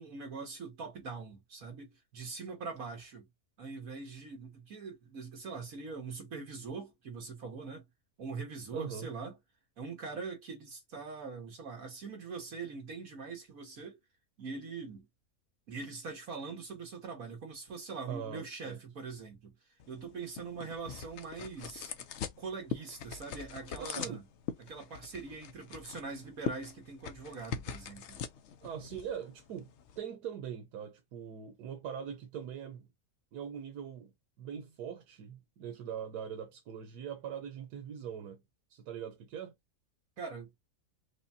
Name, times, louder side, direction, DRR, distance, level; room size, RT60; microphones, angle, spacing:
voice 1, 0.0-3.3 3.6-7.8 8.2-9.4 9.8-14.0 14.4-15.1 15.7-19.5 19.9-21.9 22.4-24.2 24.6-28.2 40.2-40.6, right 4 dB, 60° right, 1.8 m, -43 dB
voice 2, 8.7-9.1 18.1-18.8 23.7-24.2 28.6-29.7 30.0-32.9 33.3-38.4 38.7-39.5, right 8 dB, 90° right, 1.3 m, -42 dB
sound 1, 19.8-30.0, left 8 dB, 65° left, 0.7 m, -43 dB
4.9 x 2.2 x 2.7 m
omnidirectional pair, 1.7 m